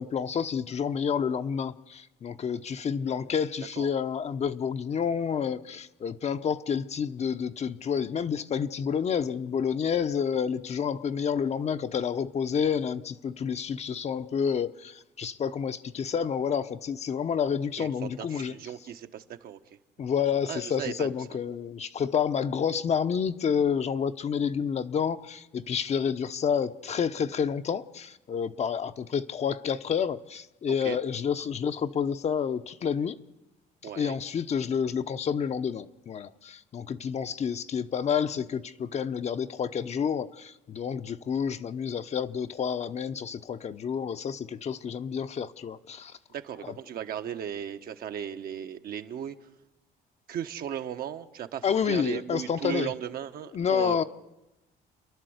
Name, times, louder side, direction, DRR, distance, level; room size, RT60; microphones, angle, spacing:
voice 1, 0.0-18.5 20.0-33.2 34.0-46.1 51.6-52.9 53.5-54.0, left 7 dB, 40° left, 0.8 m, -29 dB
voice 2, 3.0-3.3 3.8-3.9 17.8-19.6 20.5-21.1 30.7-31.0 33.8-34.2 46.3-49.4 50.3-54.0, right 9 dB, 60° right, 1.2 m, -36 dB
29.5 x 11.0 x 8.0 m
cardioid pair, 110°, 17 cm